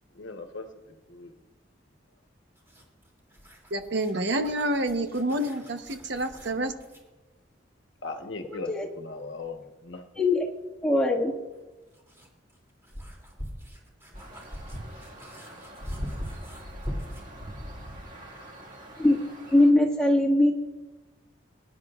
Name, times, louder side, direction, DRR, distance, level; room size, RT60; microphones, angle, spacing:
voice 1, 0.1-1.3 8.0-10.1, left 3 dB, 75° left, 5 dB, 1.1 m, -39 dB
sound 1, 2.6-7.1 9.4-9.5 11.5-17.3, equal, 15° right, 2.8 m, -41 dB
voice 2, 3.7-6.7, right 1 dB, 65° right, 7 dB, 1.0 m, -28 dB
voice 3, 10.8-11.3 19.0-19.2 19.5-20.5, left 1 dB, 5° left, -3 dB, 1.8 m, -21 dB
sound 2, 14.1-19.7, equal, 45° right, 1.9 m, -44 dB
23.0 x 10.5 x 2.4 m, 1.2 s
head